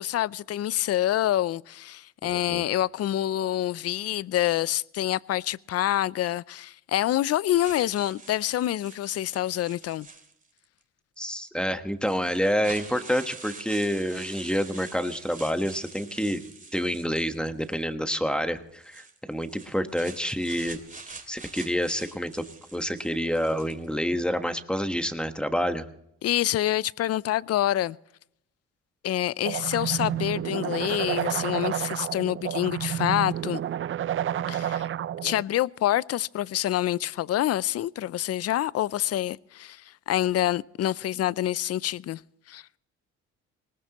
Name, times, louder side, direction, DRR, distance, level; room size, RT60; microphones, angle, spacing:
voice 1, 0.0-10.1 26.2-28.0 29.0-33.6 34.5-34.9 35.2-42.2 42.5-42.6, left 13 dB, 55° left, 0.5 m, -27 dB
voice 2, 2.3-2.6 11.2-16.4 16.7-20.8 21.3-22.4 22.7-25.9, equal, 5° left, 1.3 m, -28 dB
sound 1, 7.5-10.6 11.5-11.6 12.0-17.8 18.7-23.9, right 4 dB, 25° right, 2.6 m, -46 dB
sound 2, 29.4-35.4, right 11 dB, 45° right, 0.5 m, -30 dB
19.5 x 19.5 x 3.0 m
cardioid pair, 90°, 30 cm